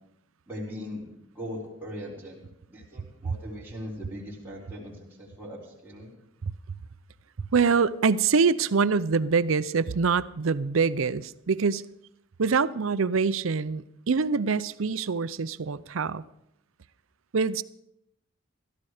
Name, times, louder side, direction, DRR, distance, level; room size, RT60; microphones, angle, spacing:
voice 1, 0.5-1.1 1.3-2.4 2.7-6.1, equal, 10° right, 4.1 m, -39 dB
voice 2, 6.4-6.8 7.4-11.8 12.4-16.2 17.3-17.6, right 5 dB, 70° right, 0.6 m, -25 dB
16.0 x 13.5 x 5.0 m
head